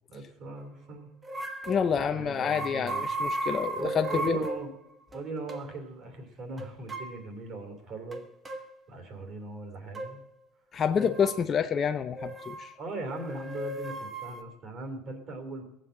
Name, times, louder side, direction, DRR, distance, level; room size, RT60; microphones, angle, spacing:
voice 1, 0.1-1.1 1.9-3.1 3.8-4.7 5.1-8.3 8.9-10.2 11.0-11.1 12.8-15.6, right 3 dB, 40° right, 6 dB, 2.9 m, -39 dB
sound 1, 1.2-1.9 2.4-4.6 5.1-5.2 5.5-5.6 6.6-7.1 8.1-8.6 9.9-10.1 11.0-11.4 12.2-12.7 13.1-14.4, right 2 dB, 15° right, 1.2 m, -35 dB
voice 2, 1.7-4.4 10.7-12.7, left 7 dB, 30° left, 7 dB, 0.5 m, -28 dB
17.5 x 7.6 x 7.7 m, 0.86 s
cardioid pair, 150°, 0 cm